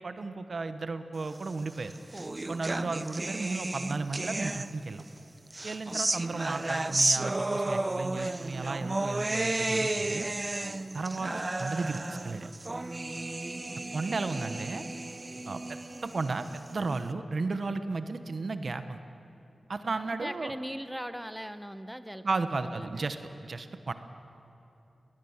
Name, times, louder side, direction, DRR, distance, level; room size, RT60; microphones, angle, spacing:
voice 1, 0.0-2.0 2.5-5.0 5.6-10.3 10.9-12.5 13.9-14.8 15.5-19.0 19.7-20.6 22.2-23.9, right 3 dB, 60° right, 10 dB, 1.1 m, -34 dB
sound 1, 1.6-5.0 5.5-17.0, right 2 dB, 30° right, 0.6 m, -33 dB
voice 2, 20.1-23.1, equal, 5° right, 11 dB, 0.9 m, -40 dB
20.5 x 18.5 x 7.3 m, 2.8 s
cardioid pair, 55°, 0 cm